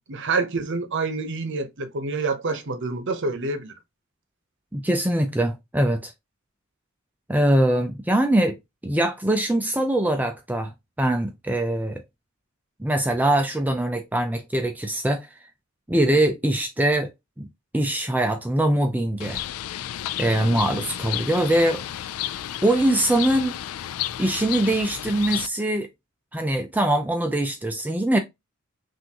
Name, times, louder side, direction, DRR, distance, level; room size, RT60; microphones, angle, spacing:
voice 1, 0.1-3.7, right 3 dB, 55° right, 0.8 m, -27 dB
voice 2, 4.7-6.1 7.3-8.6 8.8-10.7 11.0-12.0 12.8-15.3 15.9-17.1 17.4-17.5 17.7-19.4 20.2-21.8 22.6-23.6 24.2-25.9 26.3-28.2, right 1 dB, 10° right, 0.4 m, -22 dB
Bird, 19.2-25.5, left 12 dB, 80° left, 0.4 m, -32 dB
5.9 x 2.6 x 2.8 m
head